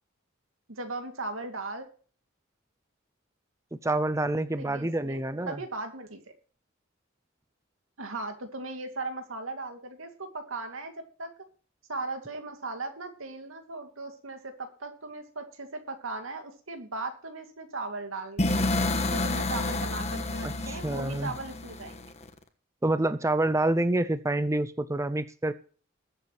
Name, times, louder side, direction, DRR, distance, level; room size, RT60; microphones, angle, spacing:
voice 1, 0.7-1.9 4.5-5.2 5.5-6.3 8.0-11.3 11.9-18.6 19.1-22.0, right 2 dB, 90° right, 5 dB, 2.3 m, -38 dB
voice 2, 3.8-5.6 20.4-21.3 22.8-25.5, right 2 dB, 15° right, 13 dB, 0.6 m, -27 dB
sound 1, 18.4-22.3, left 2 dB, 35° left, 1.3 m, -29 dB
21.0 x 8.2 x 3.1 m, 0.42 s
head